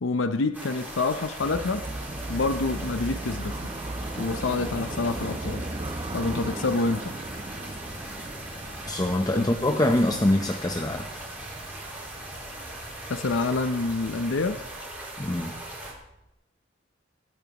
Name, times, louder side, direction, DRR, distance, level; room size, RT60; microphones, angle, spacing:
voice 1, 0.0-1.9 2.3-3.7 4.2-5.7 6.1-7.2 9.3-9.5 13.1-14.6, left 3 dB, 90° left, 0.6 m, -27 dB
sound 1, 0.5-15.9, right 1 dB, 10° right, 4.9 m, -39 dB
sound 2, 1.4-16.3, right 2 dB, 30° right, 0.7 m, -38 dB
voice 2, 8.9-11.1 15.2-15.6, left 1 dB, 20° left, 0.8 m, -24 dB
23.5 x 12.0 x 3.0 m
head